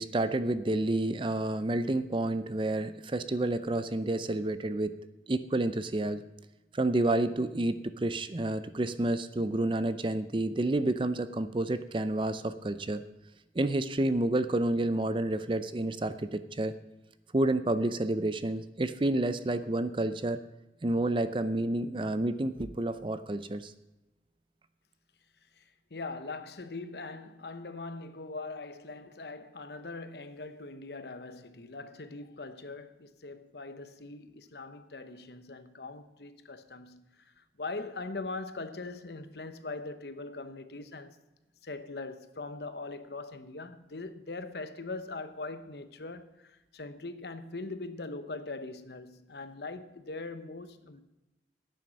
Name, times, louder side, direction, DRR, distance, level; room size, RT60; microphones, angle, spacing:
voice 1, 0.0-5.0 5.3-6.2 6.7-13.0 13.6-16.8 17.3-20.4 20.8-23.7, right 1 dB, 30° right, 0.5 m, -29 dB
voice 2, 25.9-41.2 41.6-51.0, left 3 dB, 65° left, 0.9 m, -41 dB
11.0 x 9.4 x 6.2 m
head